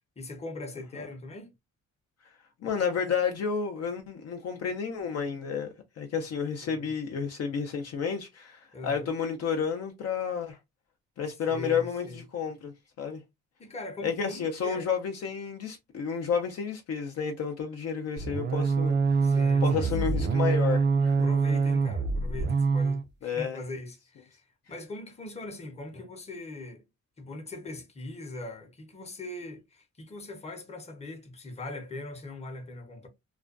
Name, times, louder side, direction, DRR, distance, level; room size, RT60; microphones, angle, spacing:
voice 1, 0.2-1.5 6.6-6.9 8.7-9.1 11.5-12.2 13.6-14.9 19.2-20.0 21.2-26.8 27.2-33.1, left 2 dB, 20° left, 0.7 m, -41 dB
voice 2, 2.6-5.7 6.0-10.6 11.2-13.2 14.0-19.3 19.6-21.3 23.2-23.6, left 6 dB, 55° left, 0.5 m, -31 dB
sound 1, 18.2-23.0, right 4 dB, 40° right, 0.4 m, -25 dB
2.4 x 2.2 x 2.4 m
cardioid pair, 90°, 30 cm